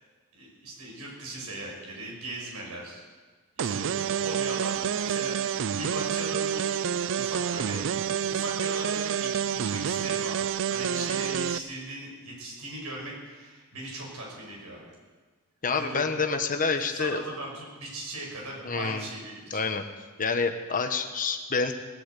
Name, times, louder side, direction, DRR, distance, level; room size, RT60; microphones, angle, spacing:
voice 1, 0.3-3.0 3.6-6.9 7.1-7.8 8.3-14.9 15.7-16.0 16.9-19.7, right 1 dB, 85° right, -2 dB, 6.1 m, -39 dB
sound 1, 3.6-11.6, right 8 dB, 60° right, 0.4 m, -28 dB
voice 2, 15.6-17.2 18.6-19.1 19.5-19.8 20.2-21.7, left 4 dB, 40° left, 7 dB, 1.2 m, -27 dB
19.5 x 8.5 x 8.3 m, 1.4 s
head